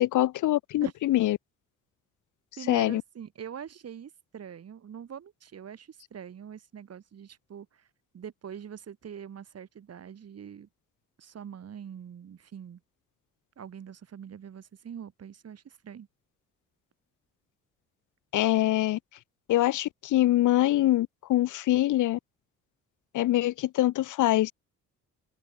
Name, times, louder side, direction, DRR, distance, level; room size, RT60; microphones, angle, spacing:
voice 1, 0.0-1.4 2.7-3.0 18.3-19.0 19.5-22.2 23.1-24.5, left 15 dB, 80° left, 1.6 m, -24 dB
voice 2, 2.6-7.9 8.1-10.7 11.2-12.8 13.6-16.1, right 8 dB, 55° right, 5.8 m, -43 dB
open air
cardioid pair, 90°, 30 cm